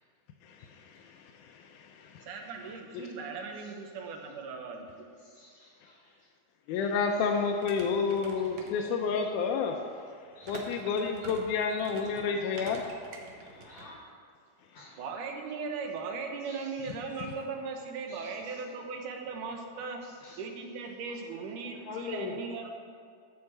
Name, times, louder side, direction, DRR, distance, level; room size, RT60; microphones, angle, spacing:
voice 1, 0.4-2.3 2.9-3.1 6.7-9.8 10.5-12.8, left 5 dB, 85° left, 3 dB, 2.1 m, -30 dB
voice 2, 2.3-4.9 15.0-20.0 20.4-22.7, right 4 dB, 90° right, 3 dB, 2.6 m, -38 dB
voice 3, 5.4-6.0 10.4-10.5 12.2-12.3 13.5-14.0 14.7-14.9 16.5-16.7 18.1-18.3 20.2-20.4 21.9-22.3, left 6 dB, 60° left, -1 dB, 1.5 m, -43 dB
sound 1, 7.6-9.3 10.4-13.9, right 3 dB, 70° right, 2.2 m, -47 dB
11.5 x 4.6 x 7.6 m, 2.2 s
omnidirectional pair, 3.5 m